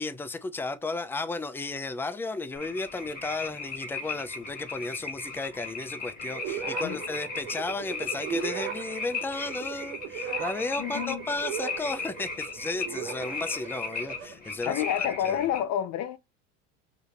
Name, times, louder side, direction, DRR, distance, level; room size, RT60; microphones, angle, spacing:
voice 1, 0.0-15.4, left 3 dB, 5° left, 0.5 m, -34 dB
sound 1, 2.6-15.6, left 4 dB, 25° left, 1.6 m, -37 dB
sound 2, 6.4-14.3, right 9 dB, 75° right, 1.1 m, -38 dB
voice 2, 10.8-11.3 14.7-16.2, left 10 dB, 50° left, 0.8 m, -29 dB
4.9 x 2.8 x 2.4 m
supercardioid pair, 100°, 35 cm